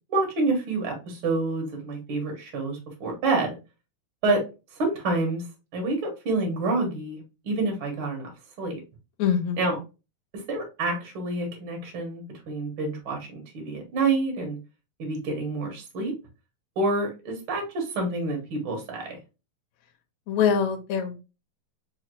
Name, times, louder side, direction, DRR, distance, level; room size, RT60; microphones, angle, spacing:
voice 1, 0.0-3.6 4.2-4.4 4.7-5.4 5.7-8.3 8.6-8.8 9.6-9.7 10.3-14.6 15.0-16.1 16.8-19.2, right 3 dB, 85° right, 2 dB, 1.1 m, -28 dB
voice 2, 9.2-9.8 20.3-21.2, left 7 dB, 75° left, 3 dB, 1.7 m, -24 dB
5.6 x 2.2 x 3.0 m, 0.29 s
omnidirectional pair, 4.2 m